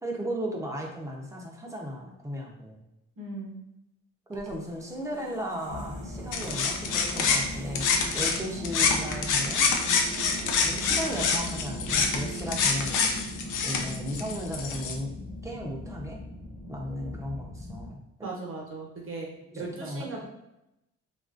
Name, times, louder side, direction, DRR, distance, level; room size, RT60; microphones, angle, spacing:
voice 1, 0.0-2.8 4.3-7.9 8.1-9.7 10.6-13.2 13.6-15.1 15.4-16.2 16.7-18.3 19.5-20.3, equal, 10° right, -1 dB, 0.6 m, -35 dB
voice 2, 3.2-3.6 18.2-19.3 19.6-20.3, right 3 dB, 45° right, -2 dB, 0.9 m, -37 dB
sound 1, 4.3-15.4, right 4 dB, 85° right, 0.6 m, -42 dB
sound 2, 5.7-17.9, left 2 dB, 35° left, 0.6 m, -40 dB
sound 3, 6.3-8.4 8.6-14.9, left 5 dB, 85° left, 0.5 m, -26 dB
2.9 x 2.5 x 2.4 m, 0.88 s
cardioid pair, 90°, 30 cm